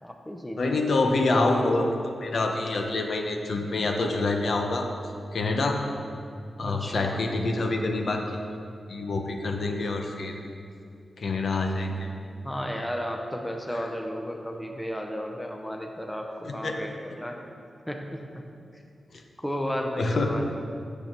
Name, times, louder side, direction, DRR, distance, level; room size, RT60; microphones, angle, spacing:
voice 1, 0.0-0.9 6.6-7.3 12.4-17.4 17.9-18.8 19.4-20.5, equal, 5° left, 2 dB, 0.6 m, -33 dB
voice 2, 0.6-4.9 5.3-5.8 6.6-8.2 8.9-10.3 11.2-12.1 16.4-16.7 20.0-20.3, left 2 dB, 60° left, 3 dB, 0.8 m, -26 dB
6.8 x 6.8 x 5.9 m, 2.4 s
wide cardioid pair, 135°, 0 cm